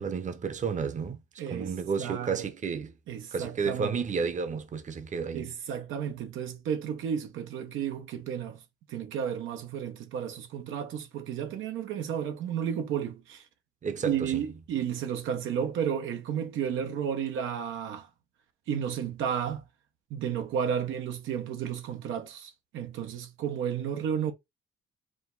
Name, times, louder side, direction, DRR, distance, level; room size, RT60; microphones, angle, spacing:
voice 1, 0.0-1.2 1.5-2.9 3.3-5.5 13.8-14.4, right 5 dB, 40° right, 0.8 m, -31 dB
voice 2, 1.4-1.7 2.0-2.4 3.1-3.9 5.3-8.6 8.9-13.4 14.0-18.1 18.7-19.6 20.1-24.3, right 8 dB, 85° right, 0.9 m, -32 dB
5.0 x 2.1 x 3.8 m
cardioid pair, 90°, 20 cm